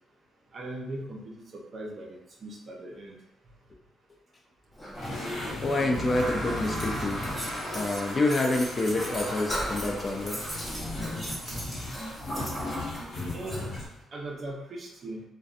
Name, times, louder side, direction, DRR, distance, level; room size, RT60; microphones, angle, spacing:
voice 1, 0.5-3.2 13.3-13.7 14.1-15.2, right 2 dB, 50° right, -1 dB, 0.6 m, -39 dB
Toilet flush, 4.7-13.9, equal, 10° left, 0.9 m, -37 dB
sound 1, 4.9-14.0, left 2 dB, 70° left, 0.9 m, -38 dB
voice 2, 5.6-7.2 7.7-10.4, left 2 dB, 35° left, 1 dB, 0.4 m, -27 dB
sound 2, 6.6-12.7, right 1 dB, 15° right, 1.0 m, -40 dB
2.6 x 2.2 x 2.4 m, 0.84 s
cardioid pair, 90°, 0 cm